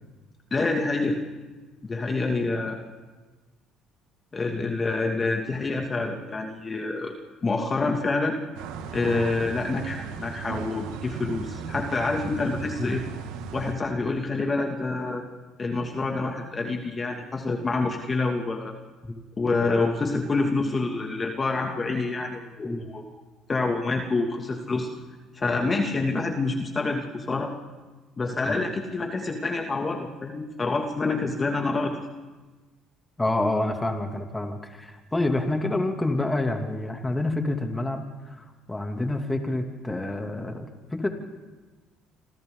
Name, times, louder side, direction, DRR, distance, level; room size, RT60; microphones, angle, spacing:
voice 1, 0.5-1.2 1.8-2.8 4.3-7.1 7.4-8.3 8.9-13.0 13.5-15.2 15.6-18.7 19.4-23.0 23.5-24.9 25.3-27.5 28.2-32.1, left 3 dB, 30° left, 2 dB, 2.5 m, -27 dB
sound 1, 8.5-13.7, right 6 dB, 85° right, 2.2 m, -36 dB
voice 2, 33.2-41.1, left 2 dB, 15° left, 4 dB, 2.8 m, -28 dB
27.5 x 26.5 x 4.0 m, 1.3 s
supercardioid pair, 80°, 0 cm